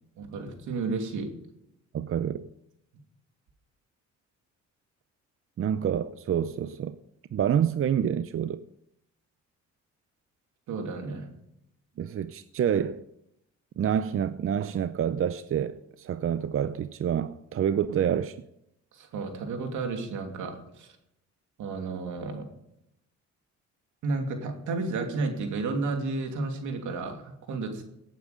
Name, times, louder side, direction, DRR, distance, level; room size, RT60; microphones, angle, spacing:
voice 1, 0.2-1.3 10.7-11.3 18.9-20.9 21.6-22.5 24.0-27.8, right 3 dB, 80° right, 2.8 m, -32 dB
voice 2, 1.9-2.5 5.6-7.0 7.3-8.6 12.0-13.0 13.8-18.4, right 9 dB, 50° right, 0.6 m, -27 dB
17.0 x 9.2 x 5.2 m
cardioid pair, 90°, 30 cm